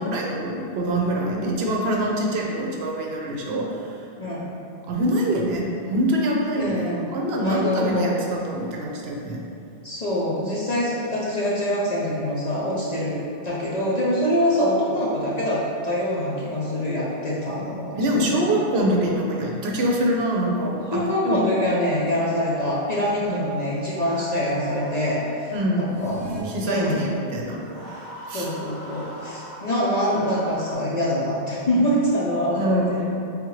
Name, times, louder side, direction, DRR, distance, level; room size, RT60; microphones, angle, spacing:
voice 1, 0.0-4.0 4.9-9.4 17.9-21.4 23.2-23.4 25.5-25.9 26.4-27.6 28.3-28.5 28.9-29.0 32.5-33.1, right 1 dB, 70° right, -2 dB, 0.8 m, -25 dB
voice 2, 4.2-4.5 6.5-7.1 7.4-8.2 9.8-18.0 20.9-26.3 26.6-27.2 28.3-33.1, equal, 50° left, -6 dB, 0.5 m, -24 dB
sound 1, 23.2-25.6 27.5-30.7, equal, 85° left, 1.2 m, -42 dB
sound 2, 25.8-26.4, right 1 dB, 20° right, 0.8 m, -38 dB
3.7 x 3.6 x 3.0 m, 2.6 s
omnidirectional pair, 1.1 m